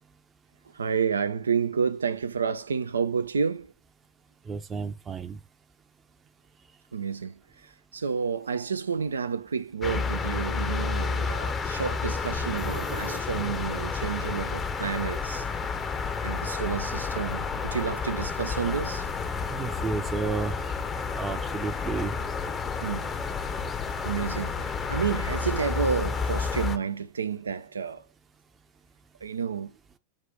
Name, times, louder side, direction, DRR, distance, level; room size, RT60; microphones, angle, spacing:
voice 1, 0.7-3.7 6.9-7.3 7.9-15.4 16.2-19.1 22.8-23.1 24.0-28.0 29.2-29.7, right 6 dB, 70° right, 0.3 m, -30 dB
voice 2, 4.5-5.4 19.5-20.6 21.1-22.1, right 4 dB, 20° right, 0.6 m, -32 dB
sound 1, 9.8-26.8, left 5 dB, 20° left, 0.7 m, -30 dB
sound 2, 12.6-13.8, right 5 dB, 50° right, 1.0 m, -41 dB
5.9 x 2.5 x 3.6 m
figure-of-eight pair, 90°, 0 cm